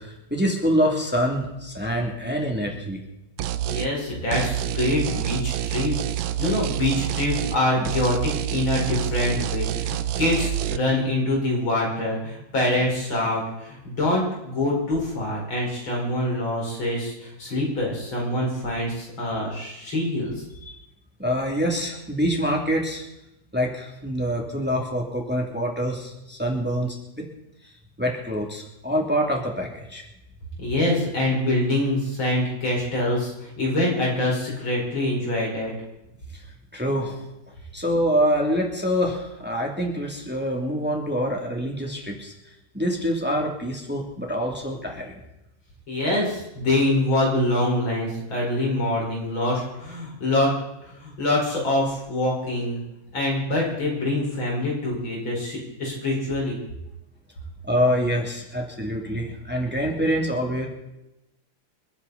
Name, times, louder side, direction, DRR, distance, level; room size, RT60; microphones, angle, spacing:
voice 1, 0.0-3.0 20.6-20.8 21.2-23.1 23.5-27.3 28.0-30.0 36.3-36.5 36.7-37.2 37.7-42.3 42.7-45.2 57.6-60.7, equal, 5° right, 0 dB, 2.8 m, -25 dB
sound 1, 3.4-3.9 4.3-7.6 7.8-10.8, right 12 dB, 85° right, 1.5 m, -27 dB
voice 2, 3.6-5.9 6.4-20.3 30.6-35.7 45.9-50.5 50.8-52.8 53.1-56.6, left 1 dB, 85° left, -3 dB, 6.0 m, -25 dB
28.5 x 10.0 x 4.2 m, 0.91 s
omnidirectional pair, 2.1 m